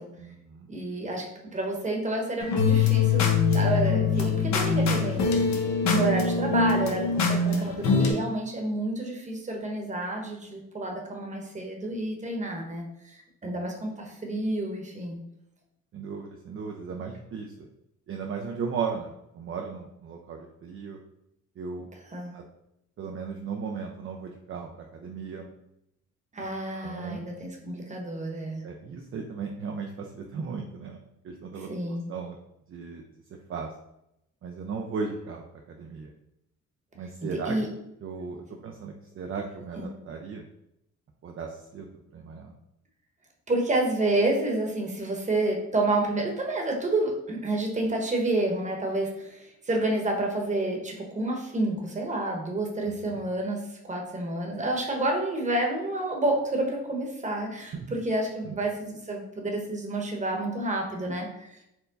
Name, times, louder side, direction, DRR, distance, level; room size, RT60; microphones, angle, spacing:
voice 1, 0.2-0.7 13.4-13.6 15.9-17.7 18.1-21.0 21.6-21.9 22.3-22.4 23.0-25.5 26.7-27.2 28.6-31.0 31.2-32.4 32.7-33.0 33.5-33.7 34.4-36.1 37.0-40.4 41.2-42.5 52.8-53.2 57.7-58.0 58.4-58.5, right 5 dB, 45° right, 2 dB, 0.5 m, -36 dB
voice 2, 0.7-3.2 3.5-5.6 5.9-15.2 22.1-22.3 26.3-28.6 31.7-32.0 37.2-37.7 39.8-39.9 43.5-61.6, right 2 dB, 25° right, 1 dB, 1.0 m, -29 dB
sound 1, 2.4-8.1, left 5 dB, 65° left, 0.9 m, -23 dB
4.5 x 2.2 x 3.9 m, 0.82 s
cardioid pair, 90°, 30 cm